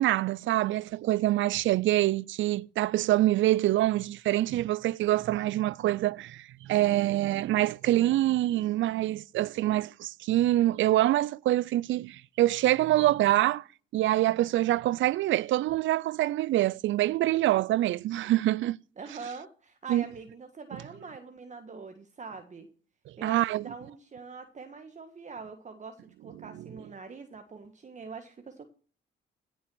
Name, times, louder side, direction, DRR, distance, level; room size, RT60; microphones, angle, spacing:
voice 1, 0.0-13.6 13.9-18.8 19.9-20.0 23.2-23.6, right 15 dB, 75° right, 0.5 m, -25 dB
voice 2, 19.0-22.7 23.2-28.7, right 4 dB, 40° right, 1.5 m, -43 dB
16.5 x 6.2 x 6.1 m
cardioid pair, 90°, 20 cm